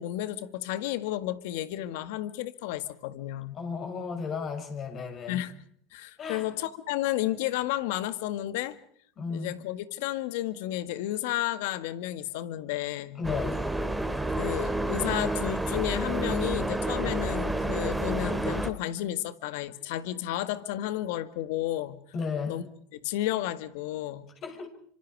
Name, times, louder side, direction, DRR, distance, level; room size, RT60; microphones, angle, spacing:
voice 1, 0.0-3.6 5.3-5.5 5.9-8.8 9.3-13.2 14.4-22.0 22.4-22.6 22.9-24.3, left 14 dB, 75° left, 13 dB, 1.8 m, -32 dB
voice 2, 3.5-5.4 6.2-6.5 9.2-9.5 13.2-13.6 22.1-22.6 24.4-24.7, left 5 dB, 45° left, 5 dB, 6.6 m, -34 dB
sound 1, 13.2-18.7, right 1 dB, 5° right, 2.9 m, -29 dB
26.5 x 25.5 x 4.8 m, 0.63 s
supercardioid pair, 95°, 0 cm